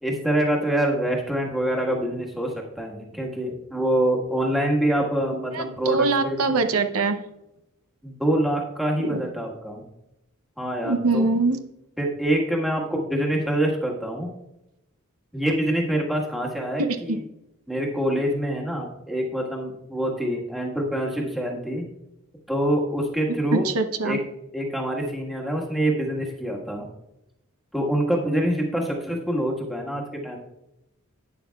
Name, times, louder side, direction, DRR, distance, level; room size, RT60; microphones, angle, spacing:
voice 1, 0.0-6.4 8.0-9.8 10.6-11.3 12.0-14.3 15.3-17.2 17.7-21.9 22.5-23.7 24.0-24.2 24.5-26.8 27.7-30.4, right 1 dB, ahead, -2 dB, 1.4 m, -25 dB
voice 2, 5.5-7.2 9.0-9.2 10.8-11.6 16.8-17.2 23.5-24.2, right 3 dB, 80° right, 8 dB, 0.7 m, -23 dB
12.0 x 9.2 x 2.3 m, 0.88 s
head